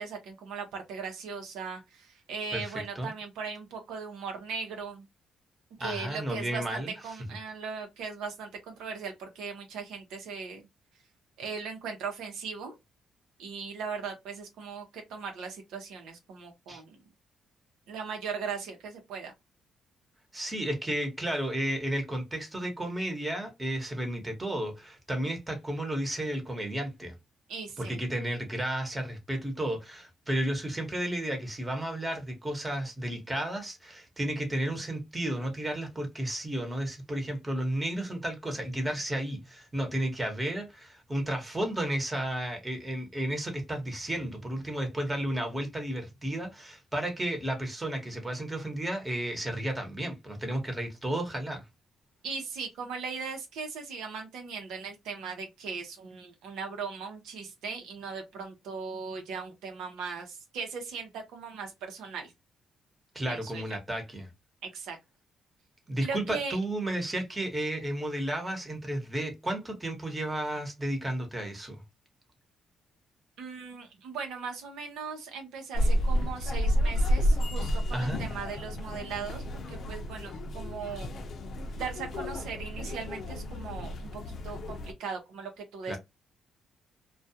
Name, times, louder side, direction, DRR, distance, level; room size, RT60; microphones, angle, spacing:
voice 1, 0.0-5.1 5.8-10.6 11.4-12.7 13.4-17.0 17.9-19.3 27.5-28.0 52.2-62.3 63.2-63.8 64.6-65.0 66.0-66.6 73.4-81.2 81.8-86.0, right 5 dB, 85° right, 0.8 m, -38 dB
voice 2, 2.5-3.1 5.8-6.9 16.7-16.8 20.3-27.1 27.8-51.6 63.1-64.3 65.9-71.8 77.9-78.2 85.9-86.0, right 1 dB, 15° right, 1.0 m, -33 dB
sound 1, 75.7-84.9, equal, 60° left, 0.5 m, -30 dB
2.3 x 2.3 x 2.7 m
cardioid pair, 90°, 0 cm